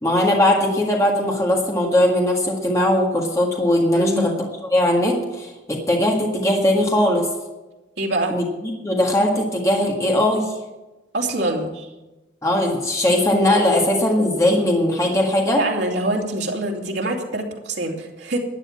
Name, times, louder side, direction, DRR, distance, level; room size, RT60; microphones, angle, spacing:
voice 1, 0.0-4.3 4.7-7.3 8.3-10.5 12.4-15.6, left 1 dB, 15° left, -1 dB, 1.8 m, -19 dB
voice 2, 3.9-4.3 8.0-8.4 11.1-11.9 15.6-18.4, right 1 dB, 80° right, 0 dB, 2.6 m, -24 dB
12.0 x 9.5 x 7.3 m, 1.1 s
head